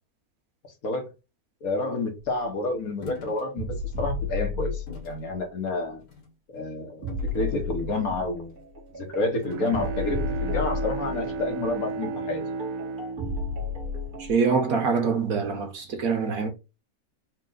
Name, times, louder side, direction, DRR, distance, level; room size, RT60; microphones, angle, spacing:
voice 1, 1.6-3.7 4.0-6.0 6.5-8.6 8.9-12.4, left 2 dB, 75° left, 1.6 m, -29 dB
sound 1, 3.0-3.5 3.9-4.1 4.9-5.2 6.0-6.3 7.1-8.0 9.4-9.9, left 3 dB, 90° left, 2.0 m, -44 dB
sound 2, 3.6-5.3 7.0-14.3, left 3 dB, 40° right, 1.9 m, -33 dB
Bowed string instrument, 9.1-14.6, right 4 dB, 90° right, 1.2 m, -34 dB
voice 2, 14.2-16.5, right 5 dB, 75° right, 1.5 m, -24 dB
4.4 x 2.5 x 3.9 m
omnidirectional pair, 1.6 m